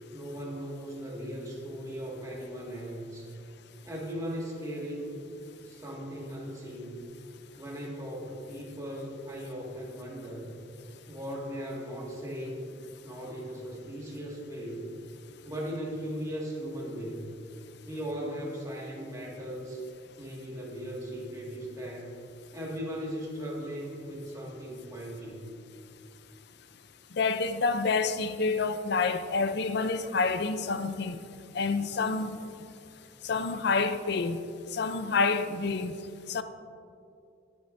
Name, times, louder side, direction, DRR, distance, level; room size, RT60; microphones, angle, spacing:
voice 1, 0.1-3.3 3.8-5.2 5.7-7.1 7.6-10.5 11.1-12.7 13.0-14.9 15.4-17.3 17.8-19.8 20.2-22.2 22.5-25.4, equal, 15° right, 1.9 m, -38 dB
voice 2, 27.1-31.2 31.5-32.4 33.2-34.4 34.7-36.0 36.3-36.4, left 4 dB, 60° left, 0.5 m, -28 dB
21.0 x 8.7 x 2.6 m
head